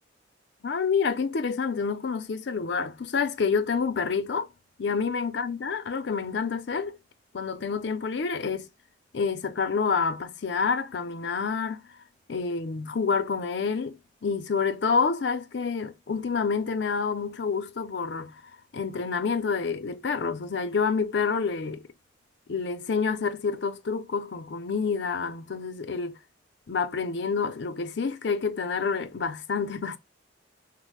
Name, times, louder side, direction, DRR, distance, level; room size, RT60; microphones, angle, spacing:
voice 1, 0.6-4.5 4.8-7.0 7.3-8.7 9.1-11.9 12.3-18.4 18.7-21.8 22.5-26.2 26.7-30.0, left 5 dB, 65° left, 0.5 m, -28 dB
4.1 x 2.0 x 3.0 m
head